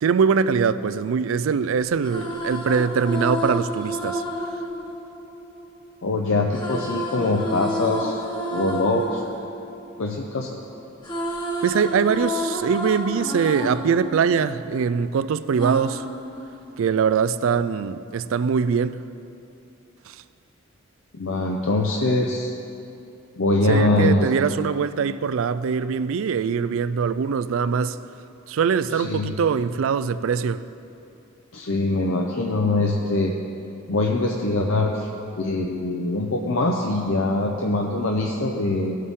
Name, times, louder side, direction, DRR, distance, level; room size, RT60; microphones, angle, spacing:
voice 1, 0.0-4.2 4.5-4.6 11.6-16.1 16.8-19.0 20.1-20.2 23.7-28.0 28.5-30.6, right 6 dB, 70° right, 0.3 m, -22 dB
sound 1, 1.8-5.9 6.5-10.6 10.8-15.1 15.6-17.0, equal, 20° left, 1.2 m, -30 dB
voice 2, 6.0-8.2 8.5-9.2 10.0-10.6 21.1-22.5 23.4-24.3 29.0-29.3 31.5-33.3 33.9-35.1 35.4-39.0, left 2 dB, 65° left, 0.7 m, -23 dB
18.0 x 6.5 x 3.6 m
head